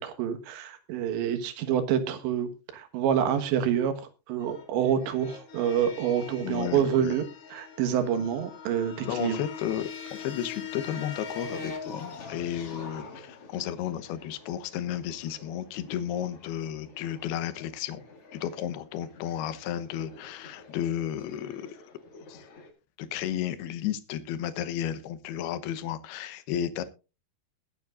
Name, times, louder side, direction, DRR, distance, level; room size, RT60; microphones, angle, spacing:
voice 1, 0.0-3.9 4.3-7.3 7.5-9.4, right 9 dB, 75° right, 3.7 m, -27 dB
sound 1, 4.4-22.7, left 5 dB, 45° left, 2.4 m, -44 dB
voice 2, 6.4-7.2 9.0-18.0 18.3-21.8 22.3-22.5 23.0-26.8, left 10 dB, 70° left, 2.7 m, -33 dB
21.0 x 9.5 x 2.5 m
omnidirectional pair, 5.3 m